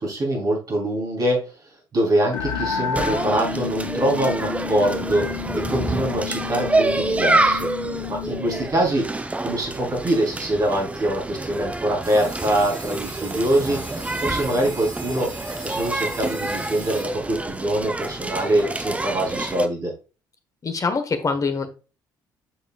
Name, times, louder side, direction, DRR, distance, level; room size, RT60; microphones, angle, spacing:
voice 1, 0.0-1.5 1.9-7.7 8.1-9.1 9.4-15.3 15.6-19.9, right 1 dB, 40° right, -2 dB, 3.7 m, -24 dB
sound 1, 2.3-8.7, left 8 dB, 70° left, 0.9 m, -31 dB
sound 2, 2.9-19.7, right 2 dB, 15° right, 0.8 m, -27 dB
sound 3, 12.0-17.0, right 3 dB, 85° right, 1.7 m, -39 dB
voice 2, 20.6-21.7, left 4 dB, 35° left, 8 dB, 1.4 m, -24 dB
8.0 x 5.8 x 2.4 m, 0.33 s
figure-of-eight pair, 50°, 10 cm